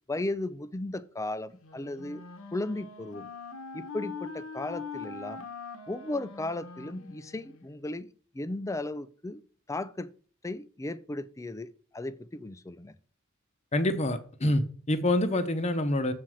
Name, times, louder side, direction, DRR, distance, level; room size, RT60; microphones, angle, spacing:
voice 1, 0.1-2.2 2.5-3.3 3.7-5.5 5.9-9.4 9.7-10.1 10.4-12.9, left 2 dB, 15° left, 0.4 m, -36 dB
Wind instrument woodwind instrument, 1.6-7.7, left 5 dB, 80° left, 1.1 m, -42 dB
voice 2, 13.7-16.1, left 1 dB, 30° left, 0.8 m, -26 dB
7.6 x 4.3 x 6.3 m
head